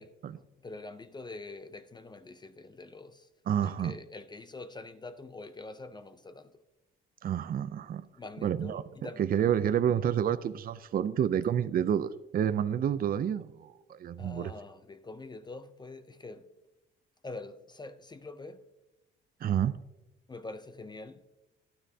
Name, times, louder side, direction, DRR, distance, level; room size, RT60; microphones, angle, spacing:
voice 1, 0.4-3.3 3.6-6.5 8.2-9.2 14.2-16.5 17.2-18.6 20.3-21.2, left 3 dB, 20° left, 0.5 m, -45 dB
voice 2, 3.5-4.0 7.2-8.0 8.4-14.5 19.4-19.8, right 9 dB, 45° right, 0.5 m, -29 dB
12.5 x 9.8 x 2.8 m
cardioid pair, 90°, 20 cm